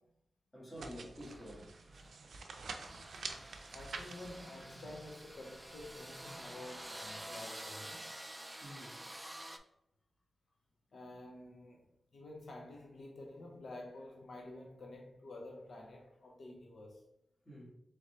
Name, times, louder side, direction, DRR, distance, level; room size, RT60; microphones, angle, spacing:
voice 1, 0.5-1.8 8.6-9.0 17.4-17.7, equal, 15° left, 1.5 m, -49 dB
sound 1, 0.7-6.5, right 4 dB, 90° right, 0.4 m, -49 dB
sound 2, 1.2-9.6, right 1 dB, 10° right, 0.3 m, -49 dB
voice 2, 3.7-8.1 10.9-11.8 12.1-17.1, left 2 dB, 65° left, 0.6 m, -50 dB
3.8 x 3.3 x 3.1 m
wide cardioid pair, 135°, 0 cm